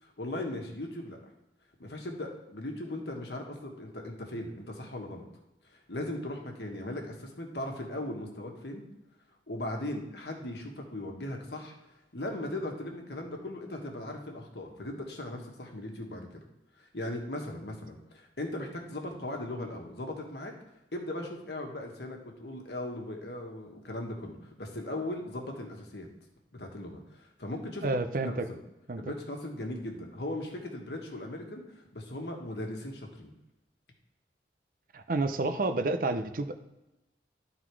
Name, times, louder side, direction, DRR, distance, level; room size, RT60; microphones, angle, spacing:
voice 1, 0.0-1.2 1.8-5.2 5.7-8.8 9.5-11.7 12.1-16.4 16.8-20.5 20.9-26.1 26.5-27.9 28.3-28.6 29.0-33.3, left 1 dB, 70° left, 2 dB, 1.4 m, -38 dB
voice 2, 27.8-28.5 28.9-29.0 34.9-36.6, right 2 dB, 50° right, 9 dB, 0.6 m, -29 dB
12.0 x 4.0 x 4.7 m, 0.98 s
head